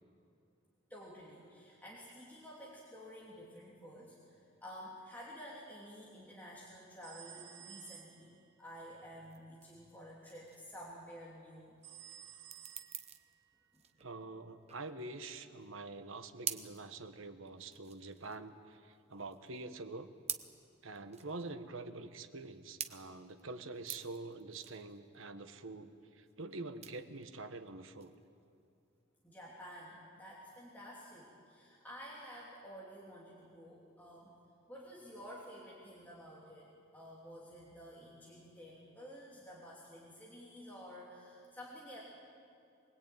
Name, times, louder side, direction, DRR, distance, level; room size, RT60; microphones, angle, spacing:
voice 1, 0.9-11.8 13.7-13.8 29.2-34.3 34.7-42.0, equal, 10° left, -6 dB, 3.0 m, -51 dB
sound 1, 7.0-8.4 11.8-13.4, right 11 dB, 55° right, 1.8 m, -54 dB
sound 2, 9.2-29.0, right 9 dB, 30° right, 0.9 m, -48 dB
voice 2, 14.0-20.1 20.8-28.1, right 3 dB, 75° right, 8 dB, 1.3 m, -46 dB
24.0 x 20.5 x 9.1 m, 2.6 s
head